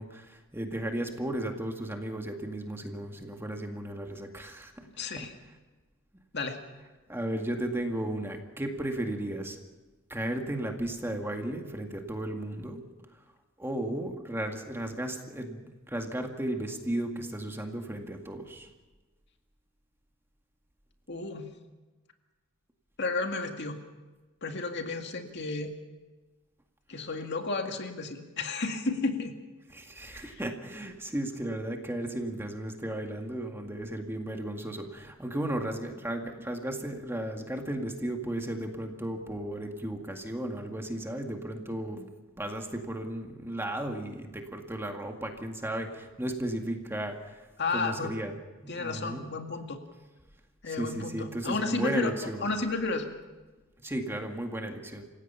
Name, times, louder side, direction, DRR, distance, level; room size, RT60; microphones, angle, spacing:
voice 1, 0.0-4.9 5.2-5.3 7.1-9.6 10.1-12.8 13.6-18.7 29.7-42.1 42.4-47.4 47.7-48.4 48.6-49.3 50.7-52.5 53.8-55.0, right 1 dB, 10° right, 3 dB, 2.0 m, -35 dB
voice 2, 5.0-5.3 6.3-6.6 21.1-21.5 23.0-23.8 24.4-25.7 26.9-29.3 30.1-30.4 47.6-48.1 48.7-49.8 50.6-52.1 52.4-53.1, left 3 dB, 55° left, 5 dB, 2.1 m, -32 dB
28.5 x 16.5 x 5.7 m, 1.2 s
head